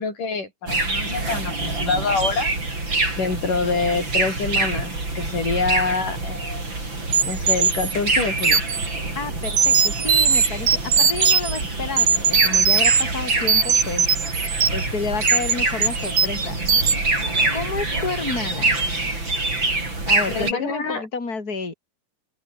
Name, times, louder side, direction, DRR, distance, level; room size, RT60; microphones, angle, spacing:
voice 1, 0.0-2.5 3.2-6.7 7.2-8.6 20.3-21.0, left 4 dB, 90° left, 8.0 m, -26 dB
sound 1, 0.7-20.5, right 2 dB, 35° right, 7.6 m, -26 dB
sound 2, 7.1-8.9 9.4-11.6 12.0-13.0 13.3-14.9 15.2-15.5 15.8-16.4 16.7-17.0, right 6 dB, 75° right, 5.0 m, -19 dB
voice 2, 9.2-14.1 14.7-16.6 17.5-18.9 20.1-21.7, left 4 dB, 25° left, 5.2 m, -30 dB
open air
omnidirectional pair, 3.6 m